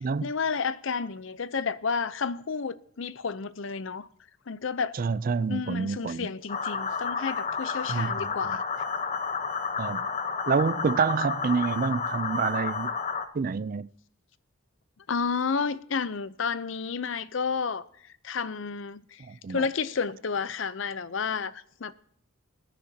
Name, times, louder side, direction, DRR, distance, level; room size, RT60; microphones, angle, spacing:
voice 1, 0.2-4.1 4.5-5.0 5.5-8.8 15.1-21.9, left 5 dB, 65° left, 0.6 m, -31 dB
voice 2, 5.0-6.3 7.9-8.3 9.8-10.1 10.5-12.9 13.3-13.9 19.3-19.6, right 5 dB, 45° right, 0.4 m, -27 dB
sound 1, 6.5-13.3, left 5 dB, 35° left, 0.9 m, -31 dB
20.5 x 10.0 x 2.8 m
head